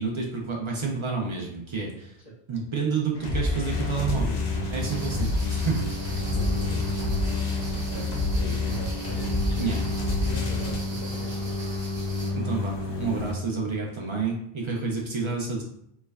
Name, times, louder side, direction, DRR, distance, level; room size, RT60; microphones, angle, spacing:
voice 1, 0.0-2.2 2.5-4.4 4.7-5.8 9.6-9.8 12.3-15.6, right 4 dB, 55° right, -1 dB, 0.3 m, -29 dB
sound 1, 3.1-10.8, left 2 dB, 85° left, 0.9 m, -28 dB
sound 2, 3.7-13.3, left 2 dB, 40° left, 0.4 m, -32 dB
sound 3, 4.8-12.3, right 2 dB, 75° right, 0.9 m, -42 dB
voice 2, 6.3-6.9 7.9-8.1 8.3-9.7 10.2-11.8, right 2 dB, 5° right, -11 dB, 0.8 m, -40 dB
3.2 x 2.1 x 2.3 m, 0.73 s
omnidirectional pair, 1.1 m